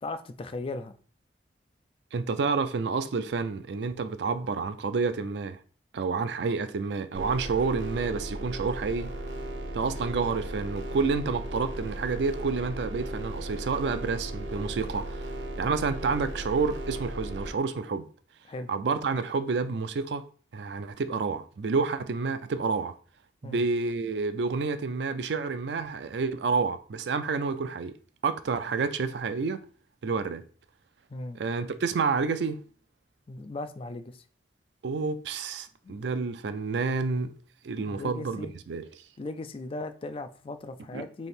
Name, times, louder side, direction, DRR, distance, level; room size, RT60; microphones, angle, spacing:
voice 1, 0.0-0.9 18.5-18.7 23.4-23.6 31.1-31.4 33.3-34.2 37.8-38.5 39.2-41.3, left 2 dB, 30° left, 0.3 m, -37 dB
voice 2, 2.1-5.6 5.9-9.1 9.7-15.3 15.6-18.0 18.7-20.2 20.5-22.9 23.4-27.9 28.2-29.6 30.0-30.4 31.3-32.6 34.8-37.3 37.6-38.9 40.9-41.1, right 4 dB, 75° right, 0.4 m, -29 dB
sound 1, 7.1-17.5, right 1 dB, 90° right, 0.9 m, -36 dB
3.3 x 2.8 x 4.3 m
head